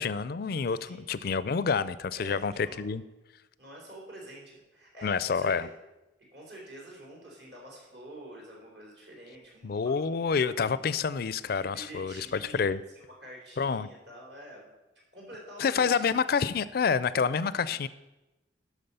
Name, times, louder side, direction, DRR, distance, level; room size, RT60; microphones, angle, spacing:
voice 1, 0.0-3.0 5.0-5.7 9.6-12.8 13.6-13.9 15.6-17.9, left 5 dB, 50° left, 17 dB, 0.4 m, -28 dB
voice 2, 0.7-1.1 2.2-2.8 3.6-5.7 6.3-10.2 10.6-11.0 11.6-14.7 15.1-16.2 17.3-17.8, right 1 dB, 65° right, -2 dB, 3.8 m, -48 dB
12.0 x 6.1 x 5.5 m, 1.0 s
head